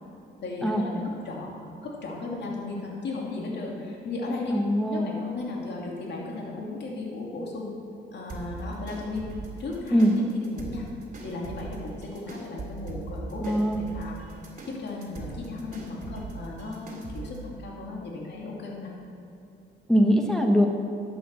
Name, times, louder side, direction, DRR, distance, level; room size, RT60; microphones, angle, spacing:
voice 1, 0.4-4.6 4.9-7.7 8.1-9.3 9.6-10.8 11.2-14.2 14.8-18.9, left 3 dB, 60° left, -2 dB, 2.5 m, -35 dB
voice 2, 4.5-5.1 9.9-10.1 13.4-13.8 19.9-20.7, equal, 5° left, 1 dB, 1.1 m, -21 dB
sound 1, 8.3-17.4, right 3 dB, 40° right, 2.6 m, -40 dB
11.5 x 8.5 x 6.2 m, 2.7 s
cardioid pair, 90°, 20 cm